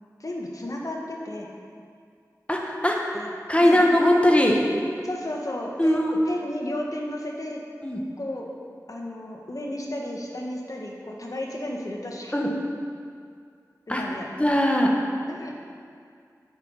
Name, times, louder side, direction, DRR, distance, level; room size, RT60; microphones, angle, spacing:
voice 1, 0.2-1.5 3.1-3.3 3.6-3.8 5.0-7.6 8.2-8.5 8.9-12.4 13.9-14.3 15.3-15.6, left 1 dB, 55° left, -1 dB, 1.6 m, -33 dB
voice 2, 2.5-3.0 3.5-4.6 5.8-6.1 7.8-8.0 12.3-12.5 13.9-14.0 14.4-14.9, left 1 dB, 20° left, 0 dB, 1.6 m, -20 dB
9.0 x 8.5 x 5.7 m, 2.3 s
wide cardioid pair, 40°, 7 cm